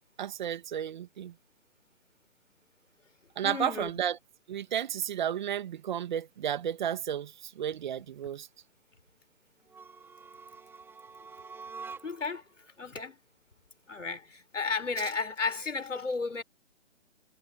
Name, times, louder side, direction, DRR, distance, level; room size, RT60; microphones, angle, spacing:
voice 1, 0.2-1.3 3.4-4.2 4.5-8.5, right 9 dB, 40° right, 2.2 m, -32 dB
voice 2, 3.4-3.9 12.0-12.4 12.8-13.2 13.9-16.4, left 4 dB, 75° left, 3.8 m, -33 dB
sound 1, 9.6-12.4, right 5 dB, 5° right, 4.3 m, -46 dB
figure-of-eight pair, 135°, 37 cm